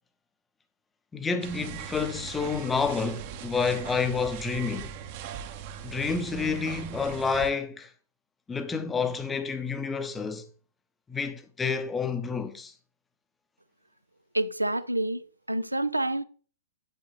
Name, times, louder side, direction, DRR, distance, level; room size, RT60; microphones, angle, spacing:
voice 1, 1.1-4.9 5.8-7.9 8.5-10.5 11.1-12.7, left 5 dB, 10° left, 0.7 m, -29 dB
sound 1, 1.4-7.5, right 9 dB, 40° right, 0.9 m, -40 dB
voice 2, 14.3-16.2, right 1 dB, 85° right, 0.5 m, -28 dB
7.8 x 5.7 x 4.0 m
figure-of-eight pair, 110°, 0 cm